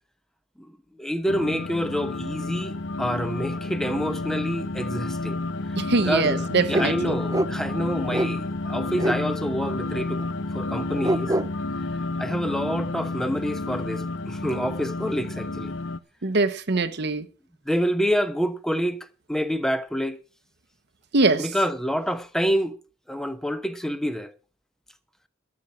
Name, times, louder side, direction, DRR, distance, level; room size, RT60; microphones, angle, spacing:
voice 1, 1.0-5.4 6.1-10.2 10.5-11.4 12.2-15.7 17.7-20.2 21.4-22.8 23.1-24.3, equal, 5° left, 1.0 m, -27 dB
sound 1, 1.3-16.0, left 2 dB, 75° left, 0.9 m, -30 dB
voice 2, 5.8-7.1 16.2-17.3 21.1-21.5, right 3 dB, 60° right, 1.0 m, -23 dB
sound 2, 6.7-6.9 7.3-7.5 8.1-8.3 8.9-9.2 10.2-10.3 11.0-11.5, right 1 dB, 20° right, 0.6 m, -25 dB
13.0 x 7.2 x 7.5 m
head